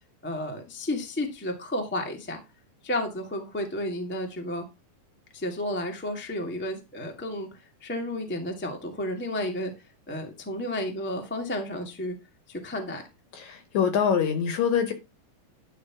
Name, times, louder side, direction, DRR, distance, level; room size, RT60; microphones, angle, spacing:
voice 1, 0.2-2.4 2.8-4.6 5.3-9.7 10.1-12.1 12.5-13.0, left 1 dB, 10° left, 0.5 m, -32 dB
voice 2, 13.3-14.9, left 7 dB, 65° left, 1.9 m, -24 dB
11.5 x 3.9 x 5.9 m
omnidirectional pair, 4.3 m